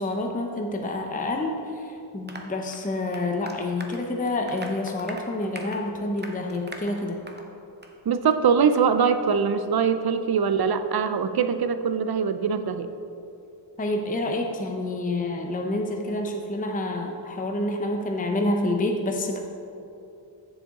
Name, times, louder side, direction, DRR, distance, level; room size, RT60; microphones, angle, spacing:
voice 1, 0.0-7.2 13.8-19.4, left 2 dB, 20° left, 3 dB, 0.6 m, -28 dB
Applause, 2.3-7.5 7.8-8.0 8.3-8.4 8.8-8.9, right 2 dB, 25° right, 0.7 m, -42 dB
voice 2, 8.1-12.9, right 6 dB, 55° right, 10 dB, 0.5 m, -22 dB
7.3 x 6.9 x 3.6 m, 2.7 s
wide cardioid pair, 75°, 45 cm